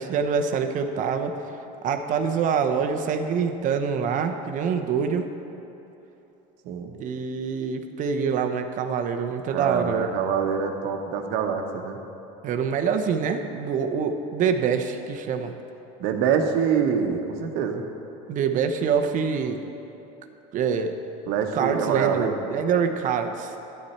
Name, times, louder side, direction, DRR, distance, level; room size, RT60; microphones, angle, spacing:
voice 1, 0.0-1.4 1.8-5.2 7.0-10.1 12.4-15.5 18.3-19.7 20.5-20.9 21.5-23.6, right 6 dB, 45° right, 6 dB, 0.7 m, -25 dB
voice 2, 9.5-12.0 16.0-17.8 21.3-22.3, right 7 dB, 65° right, 4 dB, 1.1 m, -25 dB
10.5 x 9.6 x 4.3 m, 3.0 s
supercardioid pair, 115°, 18 cm